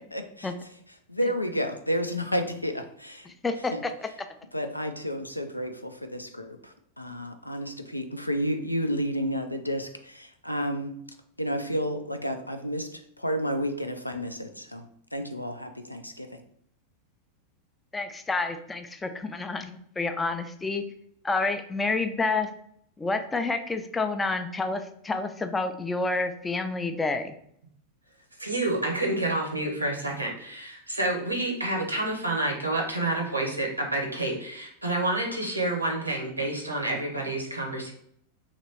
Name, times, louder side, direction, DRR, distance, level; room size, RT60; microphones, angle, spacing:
voice 1, 0.1-0.5 1.1-3.3 3.7-3.8 4.5-10.9 11.4-14.9 15.1-16.4, equal, 85° left, 7 dB, 0.4 m, -31 dB
voice 2, 3.4-4.1 17.9-20.8 21.2-22.5 23.0-27.4, left 3 dB, 10° left, 7 dB, 0.4 m, -29 dB
voice 3, 28.4-37.9, right 2 dB, 85° right, 1 dB, 0.9 m, -29 dB
3.0 x 2.9 x 4.2 m, 0.69 s
figure-of-eight pair, 90°, 0 cm